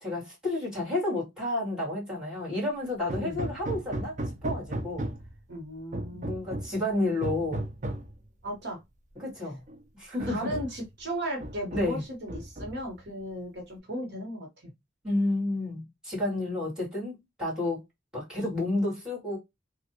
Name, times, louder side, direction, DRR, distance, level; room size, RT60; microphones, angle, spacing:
voice 1, 0.0-5.1 6.1-7.7 9.2-9.6 9.9-10.5 11.7-12.0 15.0-17.8 18.1-19.4, left 2 dB, 5° right, 2.1 m, -31 dB
Hammer, 3.1-5.4 5.9-6.8 7.2-8.1 9.2-9.3 9.7-9.8 10.2-10.9 11.4-12.0 12.3-13.0, right 1 dB, 40° right, 0.6 m, -35 dB
voice 2, 5.5-6.3 8.4-8.8 10.2-14.7, right 1 dB, 60° right, 1.1 m, -36 dB
3.3 x 2.4 x 2.8 m
head